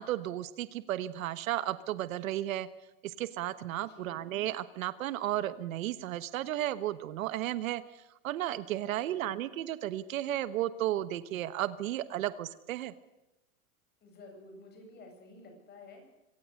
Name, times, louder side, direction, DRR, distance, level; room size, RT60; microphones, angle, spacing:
voice 1, 0.0-2.7 3.0-12.9, right 13 dB, 75° right, 14 dB, 1.3 m, -34 dB
voice 2, 3.9-4.2 8.8-9.4 14.0-16.1, left 2 dB, 25° left, 4 dB, 7.7 m, -52 dB
25.5 x 18.0 x 6.5 m, 0.98 s
supercardioid pair, 155°, 41 cm